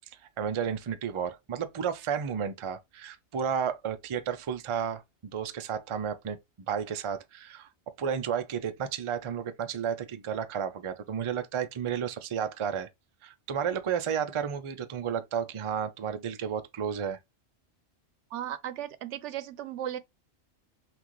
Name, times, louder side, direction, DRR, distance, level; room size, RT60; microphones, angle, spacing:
voice 1, 0.4-5.0 5.3-6.4 6.7-7.7 8.0-12.9 13.2-17.2, right 7 dB, 45° right, 0.4 m, -32 dB
voice 2, 18.3-20.0, right 11 dB, 90° right, 0.9 m, -36 dB
5.9 x 2.4 x 3.1 m
omnidirectional pair, 1.2 m